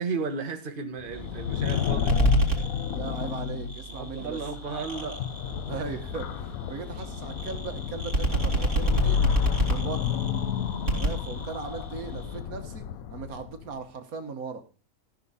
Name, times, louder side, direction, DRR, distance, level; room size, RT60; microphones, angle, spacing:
voice 1, 0.0-2.2 3.9-5.6, right 4 dB, 35° right, 1.4 m, -34 dB
sound 1, 1.1-13.7, left 8 dB, 70° left, 1.1 m, -30 dB
sound 2, 1.1-12.4, right 2 dB, 50° right, 3.2 m, -31 dB
voice 2, 2.9-4.4 5.7-9.3 9.7-10.2 10.9-14.6, right 5 dB, 70° right, 1.6 m, -38 dB
13.5 x 6.5 x 5.5 m
omnidirectional pair, 1.6 m